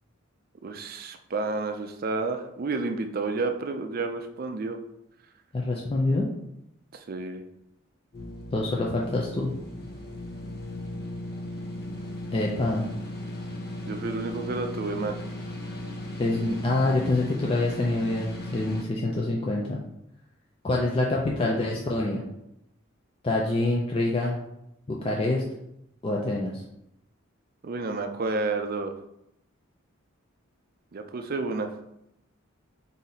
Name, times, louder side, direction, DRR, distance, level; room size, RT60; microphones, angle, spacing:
voice 1, 0.6-4.8 6.9-7.4 13.9-15.2 27.6-28.9 30.9-31.7, right 3 dB, 45° right, 7 dB, 0.4 m, -30 dB
voice 2, 5.5-6.3 8.5-9.6 12.3-12.9 16.2-19.8 20.6-22.2 23.2-24.4 24.9-25.4 26.0-26.6, left 2 dB, 25° left, -2 dB, 0.4 m, -26 dB
sound 1, 8.1-18.8, left 1 dB, 50° left, 0.8 m, -37 dB
4.0 x 2.7 x 4.1 m, 0.82 s
head